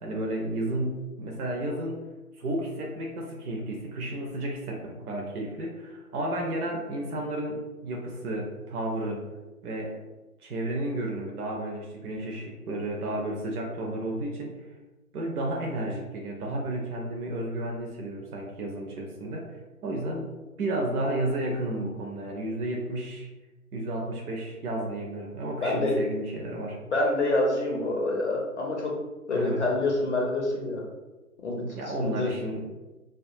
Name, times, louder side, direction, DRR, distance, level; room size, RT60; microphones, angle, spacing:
voice 1, 0.0-2.0 2.4-9.3 9.6-9.9 10.4-14.5 15.1-20.3 20.6-23.3 23.7-26.8 29.3-29.6 31.8-32.7, right 1 dB, 75° right, 0 dB, 0.6 m, -32 dB
voice 2, 25.6-26.0 26.9-28.9 29.3-30.8 31.4-31.7 32.0-32.3, left 2 dB, 50° left, -2 dB, 0.5 m, -26 dB
2.3 x 2.2 x 2.6 m, 1.1 s
hypercardioid pair, 155°, 45 cm